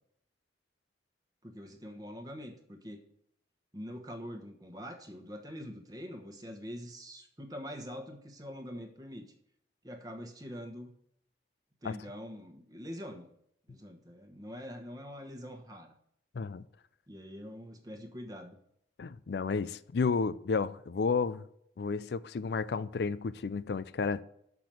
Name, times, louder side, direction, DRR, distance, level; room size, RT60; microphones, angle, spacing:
voice 1, 1.4-3.0 3.7-9.3 9.8-10.9 11.8-13.3 13.7-15.9 17.1-18.6, equal, 20° right, 1.1 m, -44 dB
voice 2, 19.0-21.5 21.8-24.2, left 4 dB, 70° left, 0.4 m, -32 dB
6.7 x 6.0 x 7.4 m
head